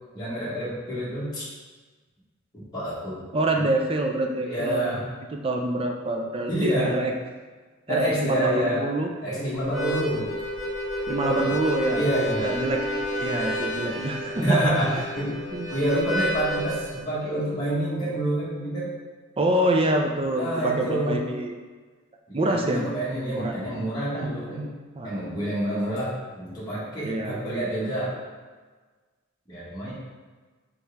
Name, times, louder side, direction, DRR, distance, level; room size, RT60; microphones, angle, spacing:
voice 1, 0.1-1.4 2.5-3.2 4.4-5.0 6.5-6.9 7.9-8.8 9.2-10.3 11.2-11.5 12.0-12.6 14.4-15.4 15.7-18.9 20.4-21.2 22.3-24.7 25.0-28.2 29.5-29.9, right 1 dB, 20° left, -10 dB, 1.4 m, -27 dB
voice 2, 3.3-4.9 5.3-7.1 7.9-9.1 11.1-12.1 12.4-12.8 13.1-14.6 15.3-15.7 19.4-21.5 22.3-22.9 23.4-23.6 25.0-25.2 27.0-27.5, right 1 dB, 25° right, 2 dB, 0.4 m, -26 dB
Harmonica, 9.6-17.0, equal, ahead, 1.0 m, -30 dB
4.4 x 3.4 x 3.5 m, 1.4 s
head